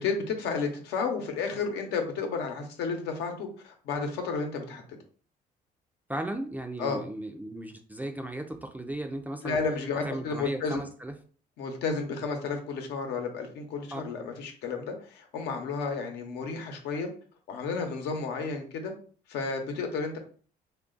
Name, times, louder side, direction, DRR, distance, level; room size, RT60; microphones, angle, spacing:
voice 1, 0.0-4.8 6.8-7.0 9.4-10.8 11.6-17.1 17.5-18.9 19.3-20.2, left 4 dB, 85° left, 4 dB, 0.9 m, -32 dB
voice 2, 6.1-9.6 10.0-11.1 13.9-14.0, right 1 dB, 10° right, 5 dB, 0.4 m, -36 dB
3.2 x 2.4 x 3.8 m, 0.42 s
cardioid pair, 110°, 17 cm